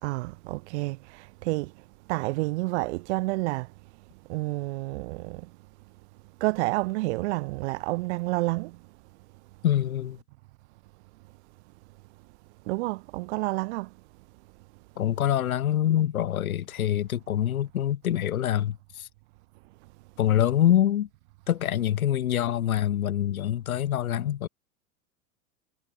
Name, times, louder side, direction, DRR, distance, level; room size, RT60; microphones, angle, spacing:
voice 1, 0.0-1.7 2.1-3.7 4.3-5.5 6.4-8.8 12.7-13.9, right 23 dB, 50° right, 1.2 m, -29 dB
voice 2, 9.6-10.2 15.0-19.1 20.2-21.1 21.5-24.5, left 11 dB, 65° left, 5.9 m, -25 dB
figure-of-eight pair, 95°, 45 cm